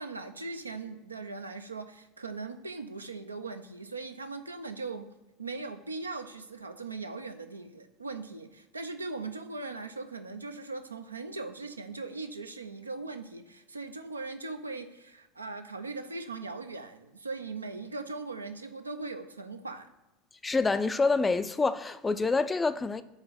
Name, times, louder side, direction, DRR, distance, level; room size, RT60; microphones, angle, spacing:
voice 1, 0.0-5.1 5.4-19.9, right 3 dB, 85° right, 0.4 m, -39 dB
voice 2, 20.4-23.0, left 4 dB, 15° left, 0.3 m, -27 dB
4.8 x 3.8 x 5.3 m
figure-of-eight pair, 75°, 0 cm